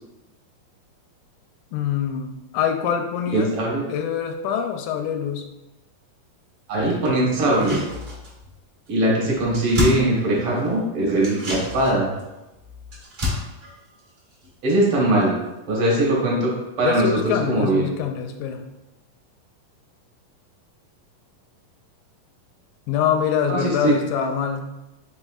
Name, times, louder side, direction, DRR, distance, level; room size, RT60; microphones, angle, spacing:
voice 1, 1.7-3.6 3.9-5.5 16.8-18.6 22.9-24.6, left 8 dB, 90° left, 4 dB, 2.3 m, -24 dB
voice 2, 3.3-3.8 6.7-7.8 8.9-12.1 14.6-15.4 15.7-17.9 23.5-23.9, right 1 dB, 55° right, -4 dB, 1.7 m, -21 dB
sound 1, 7.4-8.6 8.9-9.0 9.2-10.7 11.2-14.9 15.2-15.3, left 2 dB, 40° right, 1.1 m, -30 dB
5.2 x 3.9 x 2.3 m, 0.98 s
omnidirectional pair, 3.8 m